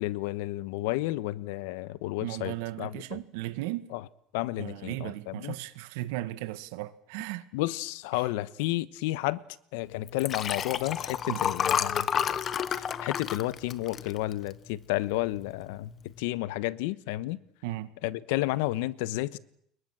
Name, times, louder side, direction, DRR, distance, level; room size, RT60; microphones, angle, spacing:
voice 1, 0.0-3.2 3.9-4.0 4.3-5.5 7.5-9.4 9.7-12.1 12.7-17.4 18.0-19.4, left 17 dB, 80° left, 1.1 m, -31 dB
voice 2, 2.2-3.9 4.6-7.5 11.3-11.4 17.6-17.9, right 16 dB, 85° right, 1.9 m, -36 dB
Liquid, 10.1-14.7 15.2-15.5 15.7-15.8, left 8 dB, 25° left, 1.0 m, -30 dB
29.5 x 22.5 x 7.6 m
cardioid pair, 175°, 0 cm